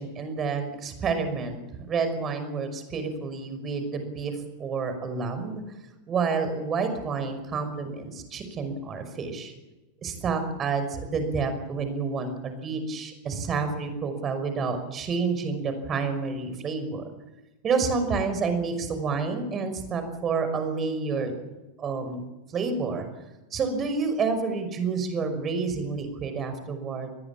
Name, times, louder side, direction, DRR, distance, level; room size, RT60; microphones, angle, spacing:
voice 1, 0.0-1.6 1.9-4.3 4.6-5.6 6.1-9.5 10.0-17.0 17.6-21.4 21.8-22.2 22.5-23.1 23.5-27.1, right 4 dB, 25° right, 8 dB, 5.7 m, -29 dB
27.5 x 20.5 x 7.5 m, 1.1 s
figure-of-eight pair, 90°, 0 cm